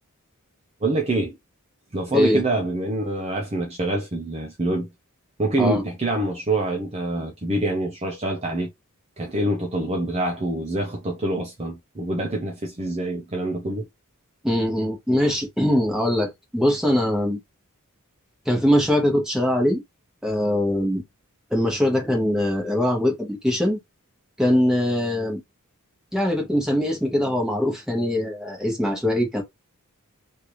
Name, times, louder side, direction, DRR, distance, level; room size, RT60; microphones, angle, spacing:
voice 1, 0.8-1.4 1.9-4.9 5.4-8.7 9.2-13.9 15.2-15.3, right 2 dB, 30° right, 0.6 m, -26 dB
voice 2, 14.4-17.4 18.5-19.8 20.2-21.0 21.5-23.8 24.4-25.4 26.1-29.4, left 1 dB, 5° right, 1.1 m, -22 dB
3.2 x 2.6 x 3.0 m
head